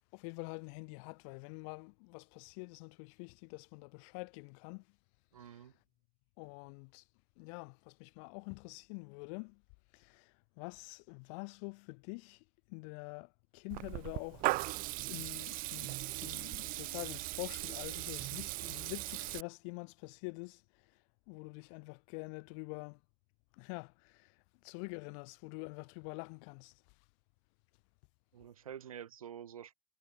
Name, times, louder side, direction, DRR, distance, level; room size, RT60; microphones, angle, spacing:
voice 1, 0.1-4.9 5.4-5.7 6.4-7.0 7.4-9.6 9.9-14.5 15.0-20.9 21.3-23.0 23.5-26.8, left 39 dB, 60° left, 7.9 m, -46 dB
voice 2, 5.3-5.7 28.3-29.7, right 9 dB, 85° right, 7.8 m, -48 dB
Water tap faucet / Liquid, 13.7-19.4, right 20 dB, 55° right, 6.9 m, -38 dB
hypercardioid pair, 85°, 18 cm